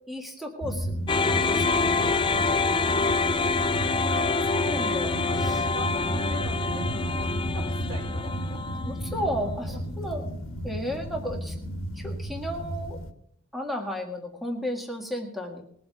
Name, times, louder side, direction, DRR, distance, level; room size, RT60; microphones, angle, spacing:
voice 1, 0.1-1.0 1.3-1.9 4.0-5.6 6.1-6.2 9.0-10.2 10.6-11.6 12.0-13.0 13.5-15.6, equal, ahead, 2 dB, 1.8 m, -34 dB
sound 1, 0.6-13.1, equal, 65° left, 1.6 m, -33 dB
sound 2, 1.1-9.4, left 4 dB, 25° left, 0.5 m, -26 dB
voice 2, 5.1-8.8 9.6-10.2, equal, 65° right, 0 dB, 5.5 m, -44 dB
20.5 x 7.7 x 5.9 m, 0.68 s
head